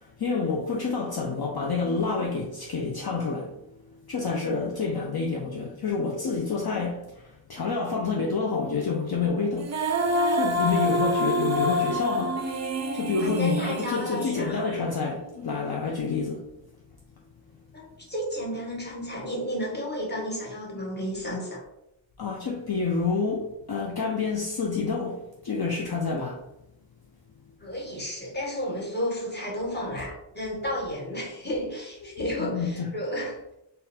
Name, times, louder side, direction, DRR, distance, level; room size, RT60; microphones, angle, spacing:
voice 1, 0.0-3.5 4.1-9.7 10.1-12.4 12.9-16.4 22.2-26.4 32.0-32.9, left 4 dB, 50° left, 0.6 m, -28 dB
Female singing, 9.6-14.8, equal, 35° right, 0.4 m, -27 dB
voice 2, 13.2-14.6 17.7-21.6 27.6-33.4, equal, 20° left, 1.3 m, -32 dB
3.8 x 2.7 x 4.1 m
wide cardioid pair, 95°, 48 cm